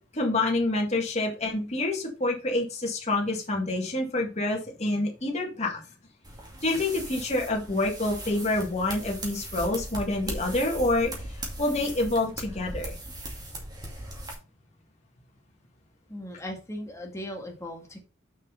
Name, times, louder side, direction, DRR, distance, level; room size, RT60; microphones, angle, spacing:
voice 1, 0.1-5.8 6.6-13.0, left 2 dB, 35° left, -1 dB, 2.0 m, -27 dB
sound 1, 6.2-14.3, right 1 dB, 20° right, 2.2 m, -38 dB
voice 2, 16.1-18.0, left 1 dB, 15° left, 1 dB, 1.9 m, -38 dB
6.2 x 5.3 x 5.6 m, 0.34 s
head